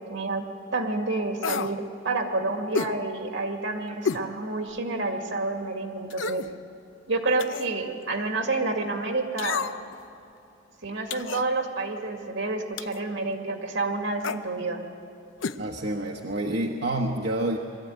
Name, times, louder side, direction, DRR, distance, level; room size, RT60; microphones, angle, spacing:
voice 1, 0.1-0.4 0.7-6.4 7.1-9.7 10.8-14.8, right 3 dB, 75° right, 4 dB, 2.1 m, -29 dB
sound 1, 1.4-1.8 2.7-3.0 4.0-4.3 4.8-4.9 6.1-6.5 7.4-7.7 9.4-9.9 11.1-11.5 12.8-13.0 14.2-14.4 15.4-15.6 15.9-16.0, left 5 dB, 75° left, 0.6 m, -30 dB
voice 2, 15.6-17.6, right 1 dB, 60° right, 0 dB, 1.1 m, -28 dB
21.5 x 13.5 x 9.2 m, 2.8 s
head